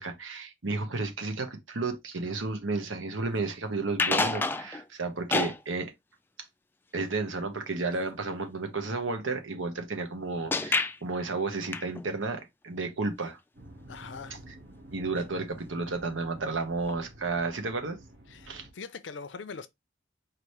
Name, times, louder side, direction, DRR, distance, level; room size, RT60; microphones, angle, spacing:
voice 1, 0.0-5.9 6.9-13.4 14.9-18.0 18.5-18.7, right 3 dB, 90° right, 1.1 m, -32 dB
sound 1, 3.9-4.8 5.3-5.6 10.5-11.0 11.7-12.1 15.2-15.3 15.6-15.7 16.9-17.0, left 3 dB, 10° left, 0.3 m, -28 dB
sound 2, 13.5-18.7, right 1 dB, 75° right, 1.5 m, -50 dB
voice 2, 13.9-14.4 18.3-19.7, left 5 dB, 65° left, 0.6 m, -42 dB
4.9 x 3.0 x 3.2 m
head